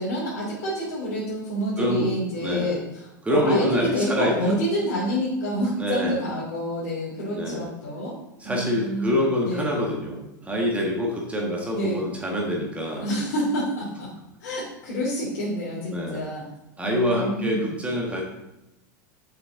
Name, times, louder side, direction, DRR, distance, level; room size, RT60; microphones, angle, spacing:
voice 1, 0.0-8.2 8.4-9.7 11.7-12.1 13.0-14.1 14.4-16.4 16.8-17.7, equal, 60° left, -6 dB, 2.7 m, -28 dB
voice 2, 1.8-2.1 2.4-2.7 3.2-4.3 5.8-6.2 7.3-7.7 8.4-13.1 15.9-16.2 16.8-18.2, left 1 dB, 10° right, -2 dB, 1.7 m, -26 dB
7.9 x 5.7 x 3.9 m, 0.91 s
hypercardioid pair, 90°, 11 cm